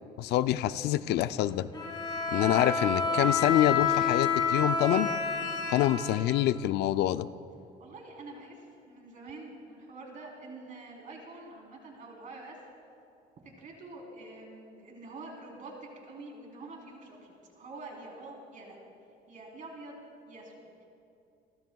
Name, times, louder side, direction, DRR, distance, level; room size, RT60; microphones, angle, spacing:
voice 1, 0.2-1.7 2.3-5.1 5.7-7.3, left 13 dB, 75° left, 14 dB, 0.4 m, -26 dB
Bowed string instrument, 1.7-6.8, left 4 dB, 25° left, 2.6 m, -29 dB
voice 2, 2.4-2.9 7.8-12.6 13.4-18.8 19.3-20.0 20.3-20.8, right 2 dB, 50° right, 0 dB, 3.6 m, -46 dB
28.0 x 13.5 x 2.3 m, 2.6 s
cardioid pair, 110°, 17 cm